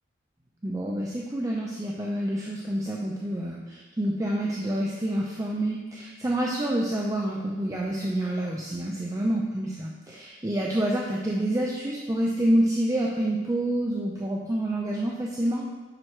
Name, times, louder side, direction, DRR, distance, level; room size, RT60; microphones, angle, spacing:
voice 1, 0.6-15.6, right 1 dB, 15° right, -2 dB, 0.6 m, -28 dB
7.5 x 6.1 x 3.2 m, 1.2 s
head